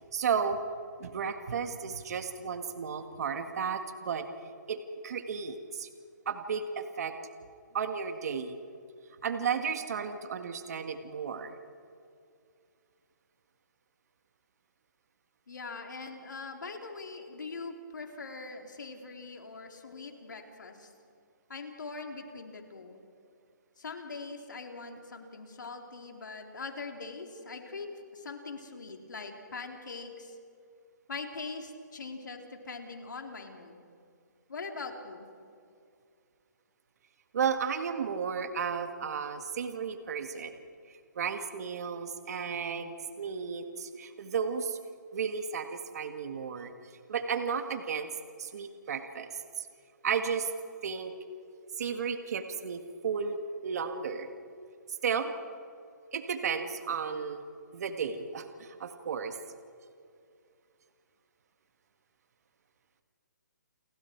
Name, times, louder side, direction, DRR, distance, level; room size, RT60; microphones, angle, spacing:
voice 1, 0.1-0.6 1.0-4.3 4.7-5.9 6.3-7.2 7.7-8.5 9.2-11.5 37.3-40.5 40.9-44.8 45.1-46.7 47.1-48.1 48.4-49.7 50.0-50.5 50.8-51.1 51.8-53.4 53.6-54.3 54.9-55.3 56.1-57.4 57.7-59.4, right 6 dB, 55° right, 7 dB, 1.8 m, -33 dB
voice 2, 15.5-20.9 21.5-23.0 23.8-30.4 31.1-33.8 34.5-35.3, left 4 dB, 80° left, 3 dB, 3.8 m, -42 dB
30.0 x 24.5 x 4.7 m, 2.4 s
hypercardioid pair, 155°, 10 cm